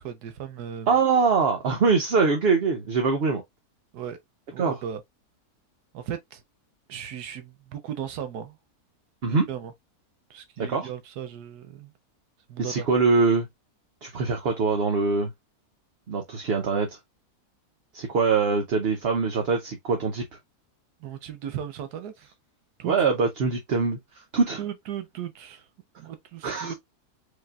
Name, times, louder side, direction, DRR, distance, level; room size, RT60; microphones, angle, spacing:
voice 1, 0.0-0.9 3.9-4.2 4.5-5.0 5.9-6.4 6.9-8.6 9.2-9.7 10.3-11.9 12.5-12.9 21.0-22.3 22.8-22.9 24.6-25.6 26.0-26.7, right 9 dB, 85° right, 1.3 m, -36 dB
voice 2, 0.9-3.4 4.6-4.7 9.2-9.5 10.6-10.9 12.6-13.5 14.0-15.3 16.1-16.9 17.9-20.2 22.8-24.0 24.3-24.6 26.4-26.7, right 4 dB, 50° right, 0.8 m, -23 dB
4.9 x 2.7 x 2.4 m
omnidirectional pair, 1.6 m